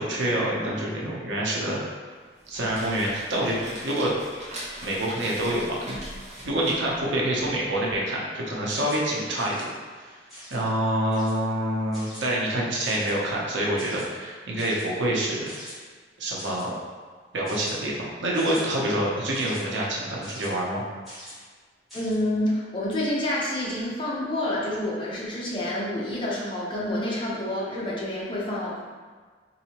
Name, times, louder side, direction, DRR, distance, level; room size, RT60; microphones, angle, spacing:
voice 1, 0.0-1.8 2.5-4.1 4.8-6.0 6.4-9.7 10.0-10.1 10.5-15.5 16.2-16.7 17.3-20.8, right 1 dB, 85° right, -4 dB, 0.8 m, -26 dB
sound 1, 2.3-7.9, equal, 40° right, 0.9 m, -41 dB
sound 2, 8.7-9.1 9.4-9.7 10.3-10.6 11.1-11.4 11.9-12.3 12.8-13.2 13.8-14.1 14.6-14.9 15.5-15.7 16.4-16.7 17.4-17.7 18.3-18.6 19.3-19.6 20.2-20.5 21.0-21.4 21.9-22.2, equal, ahead, 1.4 m, -43 dB
voice 2, 21.9-28.8, left 1 dB, 30° left, -6 dB, 0.7 m, -28 dB
3.9 x 2.7 x 2.9 m, 1.5 s
head